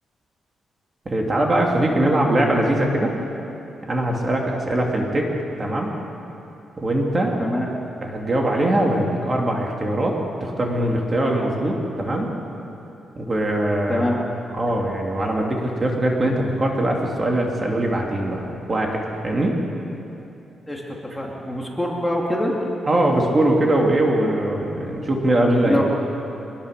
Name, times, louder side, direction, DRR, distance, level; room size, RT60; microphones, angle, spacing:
voice 1, 1.0-3.1 3.9-5.3 5.6-5.9 6.8-7.4 8.0-12.3 13.2-14.0 14.5-19.6 22.9-25.8, right 1 dB, 25° right, 0 dB, 2.8 m, -21 dB
voice 2, 13.9-14.2 20.7-22.6 25.6-25.8, left 1 dB, 5° left, -2 dB, 2.7 m, -24 dB
25.0 x 20.5 x 6.8 m, 2.9 s
wide cardioid pair, 150°, 0 cm